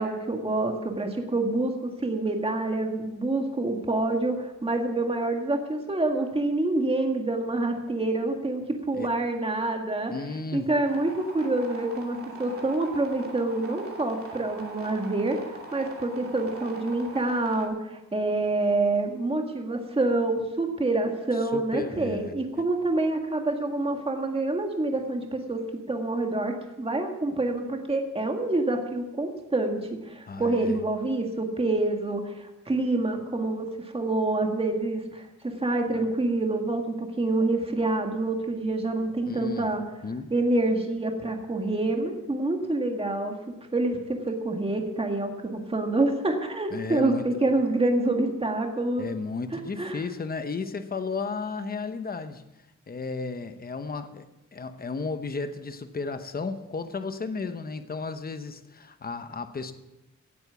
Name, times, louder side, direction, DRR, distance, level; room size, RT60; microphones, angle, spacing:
voice 1, 0.0-10.1 10.5-25.6 25.9-29.8 30.1-33.7 33.9-35.3 35.6-39.8 40.3-43.3 43.7-49.0 49.8-50.0, right 2 dB, 20° right, 1.8 m, -27 dB
voice 2, 10.1-10.7 21.3-22.3 30.3-30.8 39.3-39.7 40.0-40.3 46.7-47.3 49.0-52.4 52.9-54.3 54.5-59.7, left 4 dB, 30° left, 0.9 m, -33 dB
sound 1, 10.9-17.7, right 2 dB, 45° right, 2.6 m, -42 dB
17.0 x 8.8 x 7.0 m
wide cardioid pair, 175°, 31 cm